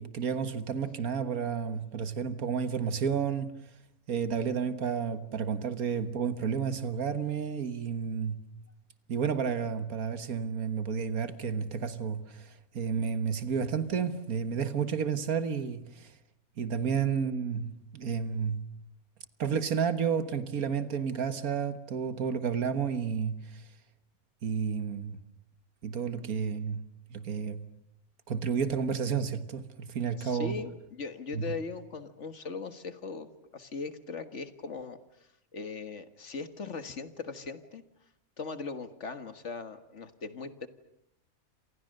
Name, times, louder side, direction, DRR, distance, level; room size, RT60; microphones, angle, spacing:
voice 1, 0.0-3.5 4.1-8.4 9.1-16.1 16.6-18.6 19.4-23.4 24.4-25.2 25.8-26.8 27.1-27.6 28.3-30.6 31.3-31.5, right 6 dB, 80° right, 1.9 m, -31 dB
voice 2, 30.2-35.0 35.5-37.8 38.4-40.7, left 4 dB, 55° left, 1.9 m, -39 dB
28.5 x 27.0 x 6.6 m
omnidirectional pair, 1.5 m